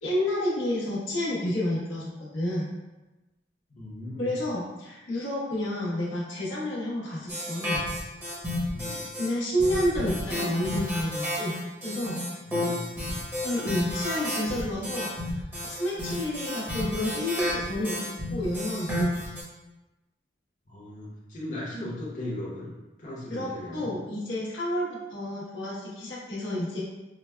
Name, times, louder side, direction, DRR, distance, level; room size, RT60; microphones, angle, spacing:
voice 1, 0.0-2.7 4.2-7.8 9.2-11.5 11.8-12.2 13.4-15.4 15.6-18.0 18.3-19.2 23.3-26.8, left 1 dB, 90° left, -7 dB, 1.0 m, -30 dB
voice 2, 3.7-4.3 8.7-9.0 12.5-13.2 20.7-22.7 23.0-23.9, left 1 dB, 45° left, -7 dB, 0.9 m, -37 dB
sound 1, 7.3-9.3 9.6-19.4, left 1 dB, 10° right, 0.9 m, -32 dB
4.8 x 2.2 x 2.2 m, 1.1 s
head